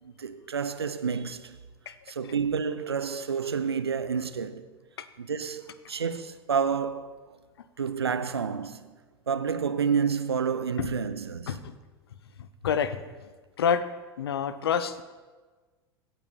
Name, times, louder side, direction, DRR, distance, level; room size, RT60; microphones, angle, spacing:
voice 1, 0.0-1.6 2.1-4.7 5.2-7.3 7.8-9.0 9.3-11.6, right 6 dB, 90° right, 0.5 m, -29 dB
voice 2, 12.6-13.0 13.6-13.8 14.2-15.0, left 7 dB, 75° left, 0.6 m, -27 dB
16.5 x 5.8 x 4.2 m
hypercardioid pair, 85°, 13 cm